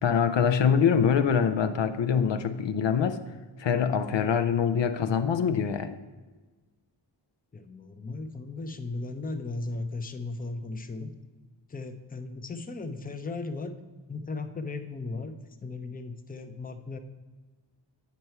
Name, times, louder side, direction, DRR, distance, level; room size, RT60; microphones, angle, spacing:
voice 1, 0.0-3.2 3.6-6.0, left 7 dB, 65° left, 9 dB, 0.6 m, -24 dB
voice 2, 7.5-11.1 11.7-13.7 14.1-17.0, left 3 dB, 20° left, 8 dB, 0.6 m, -36 dB
8.2 x 5.5 x 4.5 m, 1.3 s
wide cardioid pair, 70°, 46 cm